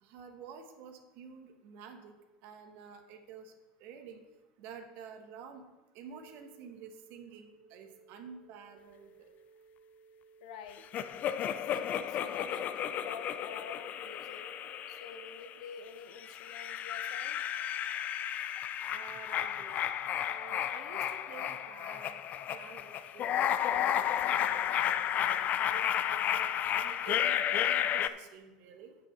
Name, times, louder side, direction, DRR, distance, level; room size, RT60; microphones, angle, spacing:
voice 1, 0.0-2.2 2.4-3.5 3.8-4.2 4.6-5.7 5.9-9.3 18.9-19.8 20.3-22.1 22.5-27.4 27.9-29.0, right 6 dB, 60° right, 6 dB, 1.3 m, -50 dB
sound 1, 6.1-16.1, right 4 dB, 5° left, 1.0 m, -60 dB
voice 2, 10.4-10.9 11.4-14.5 14.9-17.4, left 7 dB, 75° left, 9 dB, 1.0 m, -48 dB
sound 2, 10.9-15.7 16.2-28.1, left 10 dB, 45° left, 0.5 m, -32 dB
8.7 x 5.5 x 6.0 m, 1.2 s
hypercardioid pair, 100°, 4 cm